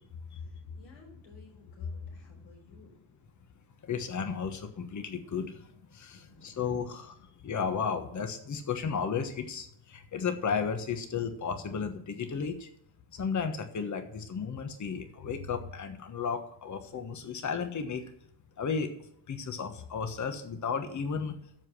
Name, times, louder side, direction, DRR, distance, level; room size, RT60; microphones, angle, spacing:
voice 1, 0.3-3.0 6.1-6.5, left 5 dB, 80° left, 2 dB, 5.0 m, -45 dB
voice 2, 3.8-12.7 13.1-18.0 18.6-18.9 19.3-21.5, left 6 dB, 40° left, 7 dB, 1.3 m, -34 dB
13.5 x 4.9 x 7.5 m, 0.72 s
cardioid pair, 150°, 45 cm